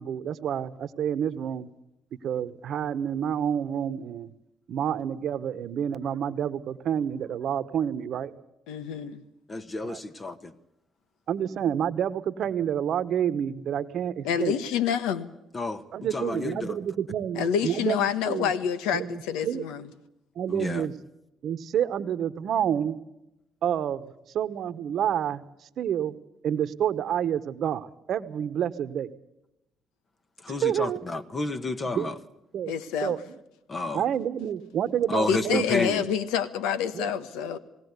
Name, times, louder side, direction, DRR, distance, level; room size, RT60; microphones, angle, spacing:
voice 1, 0.0-1.7 2.2-4.3 4.7-8.3 9.8-10.0 11.3-14.5 15.9-18.0 18.2-18.5 18.9-19.6 20.4-20.9 21.4-23.0 23.6-24.1 24.3-25.4 25.8-26.1 26.4-29.1 30.5-31.0 31.9-32.1 32.5-32.7 33.0-33.2 33.9-35.8 36.9-37.1, right 9 dB, 65° right, 12 dB, 1.1 m, -28 dB
voice 2, 8.7-9.2 14.2-15.3 17.3-19.9 32.7-33.2 35.3-37.6, left 8 dB, 90° left, 13 dB, 1.2 m, -27 dB
voice 3, 9.5-10.5 15.5-15.8 16.1-16.8 20.5-20.9 30.4-32.1 33.7-34.0 35.1-36.0, left 2 dB, 30° left, 10 dB, 1.2 m, -30 dB
19.0 x 18.0 x 8.2 m, 0.89 s
supercardioid pair, 75°, 0 cm